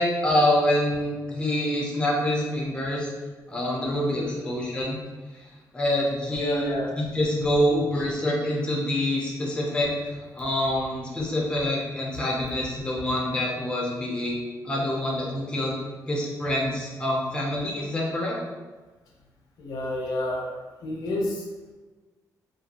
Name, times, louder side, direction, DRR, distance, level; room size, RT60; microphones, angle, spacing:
voice 1, 0.0-3.1 3.5-5.0 5.7-15.8 16.1-18.4, left 1 dB, 15° left, -3 dB, 0.4 m, -26 dB
voice 2, 4.1-4.4 6.4-6.9 19.6-20.5 20.8-21.4, left 1 dB, 85° left, -2 dB, 0.6 m, -29 dB
2.4 x 2.3 x 2.8 m, 1.3 s
wide cardioid pair, 155°, 7 cm